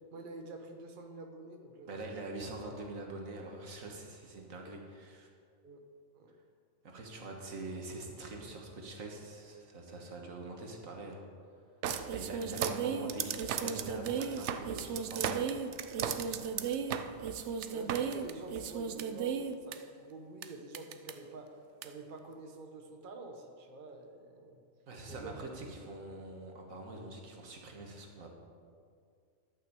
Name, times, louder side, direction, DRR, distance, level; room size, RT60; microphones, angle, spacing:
voice 1, 0.1-1.9 2.2-2.3 5.6-5.8 6.1-6.3 12.0-12.3 16.3-16.5 17.7-21.6 21.8-24.6 25.1-25.3, right 2 dB, 45° right, 3 dB, 1.1 m, -47 dB
voice 2, 1.9-5.3 6.8-11.3 12.1-15.4 24.9-28.3, right 2 dB, 90° right, 1 dB, 1.8 m, -44 dB
sound 1, 11.8-19.8 20.4-20.5 20.7-21.1 21.8-21.9, right 7 dB, 65° right, 0.8 m, -35 dB
11.5 x 5.9 x 6.8 m, 2.2 s
omnidirectional pair, 1.4 m